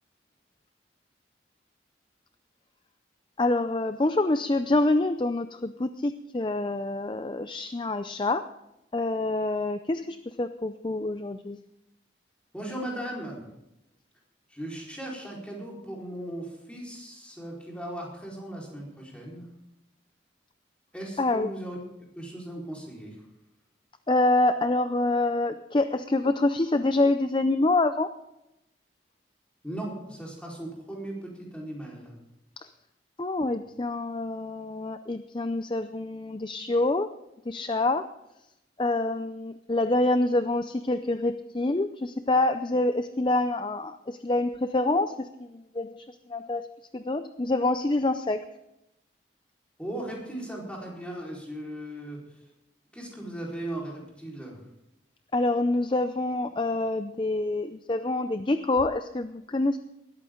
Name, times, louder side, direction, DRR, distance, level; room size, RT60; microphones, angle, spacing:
voice 1, 3.4-8.5 8.9-11.6 21.2-21.5 24.1-28.1 32.6-32.7 33.2-37.1 37.5-38.1 38.8-46.6 46.9-48.5 55.3-59.8, left 2 dB, 25° left, 10 dB, 0.5 m, -26 dB
voice 2, 12.5-13.5 14.5-19.5 20.9-21.8 22.1-23.2 29.6-32.1 49.8-52.2 52.9-54.6, right 1 dB, 5° left, -3 dB, 4.5 m, -37 dB
19.5 x 13.5 x 3.8 m, 0.88 s
head